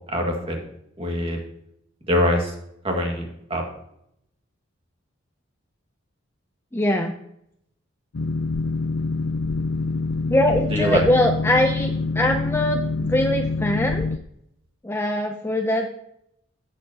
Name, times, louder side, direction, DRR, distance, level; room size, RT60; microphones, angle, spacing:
voice 1, 0.1-0.6 1.0-1.4 2.1-2.5 2.8-3.6 10.7-11.0, equal, 25° right, 1 dB, 1.9 m, -23 dB
voice 2, 6.7-7.1 10.3-14.1 14.8-15.9, left 1 dB, 10° left, 4 dB, 0.5 m, -22 dB
Boat Water vehicle, 8.1-14.2, left 3 dB, 85° left, 0.5 m, -26 dB
16.5 x 7.0 x 2.9 m, 0.76 s
head